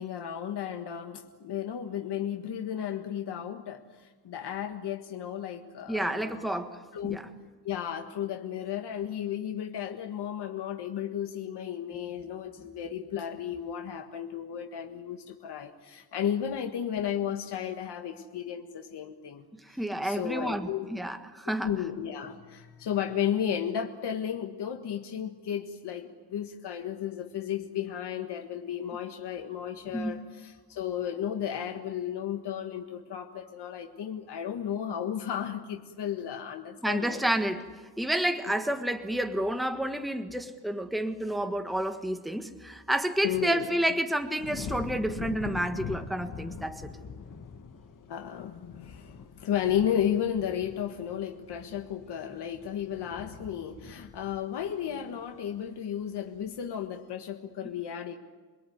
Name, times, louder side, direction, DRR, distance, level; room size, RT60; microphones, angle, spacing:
voice 1, 0.0-6.5 6.9-7.2 7.6-20.9 21.6-37.2 43.2-43.7 48.1-58.2, left 9 dB, 90° left, 4 dB, 1.8 m, -34 dB
voice 2, 5.9-7.3 19.5-21.7 29.9-30.2 36.8-37.7 38.0-46.9, right 1 dB, ahead, 7 dB, 1.5 m, -30 dB
sound 1, 44.4-55.7 56.1-56.6, left 5 dB, 50° left, 2.0 m, -43 dB
28.5 x 22.0 x 9.5 m, 1.4 s
wide cardioid pair, 155°, 39 cm